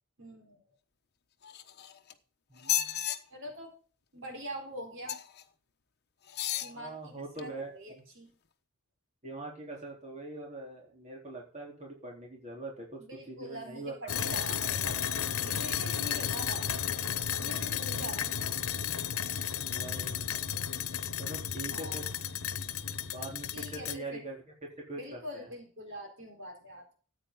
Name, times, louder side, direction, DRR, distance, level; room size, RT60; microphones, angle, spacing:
voice 1, 0.2-0.7 3.3-3.7 4.1-5.2 6.6-8.3 13.0-15.0 15.3-16.9 17.3-18.5 21.7-22.2 23.5-24.2 25.0-27.0, equal, 60° right, 3 dB, 4.3 m, -44 dB
sound 1, 1.4-2.1 2.6-3.2 5.1-5.4 6.3-6.7 7.4-7.5, left 11 dB, 50° left, 1.1 m, -33 dB
voice 2, 2.5-3.0 6.7-8.0 9.2-13.0 13.3-14.6 14.8-14.9 17.9-18.3 19.7-20.3 21.2-22.1 23.1-24.4 24.8-25.5, right 2 dB, 35° right, -1 dB, 3.9 m, -43 dB
sound 2, 14.1-24.0, left 8 dB, 90° left, 1.0 m, -33 dB
14.0 x 8.9 x 3.9 m, 0.40 s
head